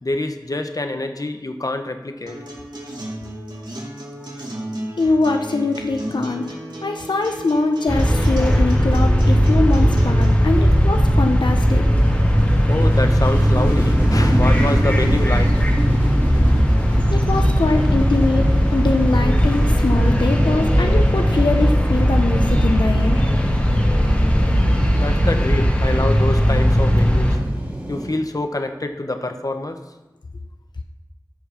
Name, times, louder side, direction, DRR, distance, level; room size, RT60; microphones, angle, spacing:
voice 1, 0.0-2.4 4.2-4.3 12.7-15.5 24.9-27.4 27.9-29.8, left 2 dB, 55° left, 7 dB, 0.9 m, -26 dB
Acoustic guitar, 2.3-10.2, right 1 dB, 80° right, 2.3 m, -34 dB
voice 2, 5.0-6.5 6.8-11.9 17.1-23.3, left 3 dB, 85° left, 4 dB, 0.6 m, -22 dB
sound 1, 7.9-27.4, equal, 20° left, 1.9 m, -17 dB
sound 2, 9.6-28.1, equal, 25° right, 2.4 m, -30 dB
13.5 x 4.8 x 5.8 m, 1.0 s
wide cardioid pair, 45°, 8 cm